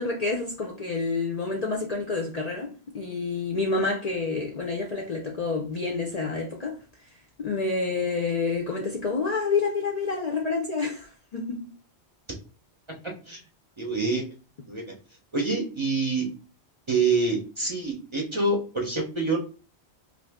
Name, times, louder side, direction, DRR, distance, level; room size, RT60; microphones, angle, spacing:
voice 1, 0.0-6.8 7.4-11.7, left 4 dB, 50° left, 0.5 m, -28 dB
voice 2, 13.8-14.2 14.7-14.8 15.3-16.3 16.9-19.4, right 3 dB, 30° right, 0.7 m, -26 dB
2.6 x 2.5 x 3.4 m
omnidirectional pair, 1.1 m